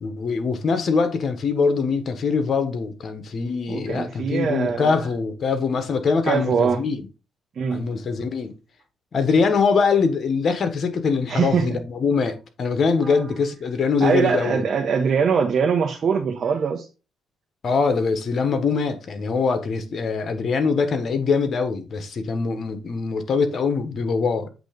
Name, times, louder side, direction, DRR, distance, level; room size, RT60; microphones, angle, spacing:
voice 1, 0.0-7.0 7.7-8.5 9.1-14.6 17.6-24.5, left 5 dB, 50° left, 1.4 m, -23 dB
voice 2, 3.7-5.0 6.2-6.8 7.6-7.8 11.3-11.8 13.0-13.2 14.0-16.9, right 6 dB, 55° right, 1.2 m, -22 dB
8.0 x 3.4 x 5.3 m
cardioid pair, 90°, 0 cm